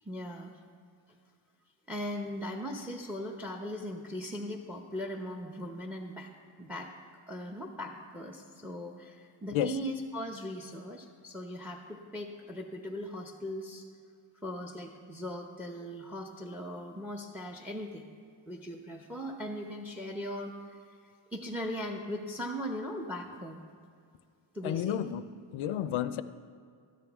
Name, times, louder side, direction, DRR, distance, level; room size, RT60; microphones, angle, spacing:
voice 1, 0.0-0.5 1.9-6.3 6.6-6.9 7.3-13.8 14.3-18.0 18.5-23.6 24.5-25.0, equal, 5° right, 3 dB, 0.9 m, -39 dB
voice 2, 24.6-26.2, left 10 dB, 70° left, 12 dB, 0.6 m, -31 dB
13.0 x 10.5 x 3.6 m, 2.3 s
cardioid pair, 85°, 50 cm